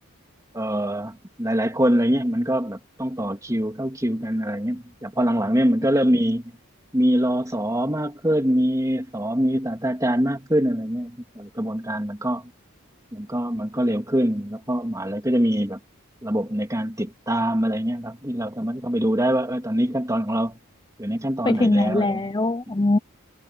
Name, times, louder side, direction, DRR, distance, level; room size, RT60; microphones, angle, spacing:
voice 1, 0.5-6.5 6.9-12.4 13.1-15.8 16.2-20.6 21.0-22.3, equal, 15° right, 3.1 m, -24 dB
voice 2, 21.4-23.0, left 2 dB, 20° left, 0.6 m, -21 dB
head